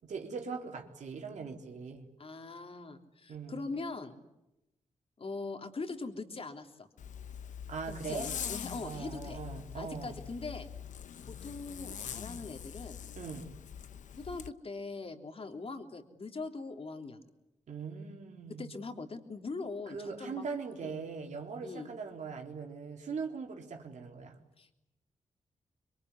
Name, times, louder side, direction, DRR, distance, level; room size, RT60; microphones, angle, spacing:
voice 1, 0.0-2.1 3.3-3.6 7.7-8.3 8.8-10.1 13.1-13.5 17.7-18.7 19.9-24.4, right 5 dB, 70° right, 2 dB, 3.9 m, -40 dB
voice 2, 2.2-4.2 5.2-6.9 7.9-9.4 9.7-10.7 11.3-13.0 14.2-17.2 18.6-20.5 20.8-20.9 21.6-21.9 24.6-24.7, left 3 dB, 50° left, 4 dB, 3.4 m, -41 dB
Zipper (clothing), 7.0-14.5, left 8 dB, 75° left, 1.0 m, -43 dB
26.5 x 22.5 x 9.7 m, 0.91 s
supercardioid pair, 50°, 13 cm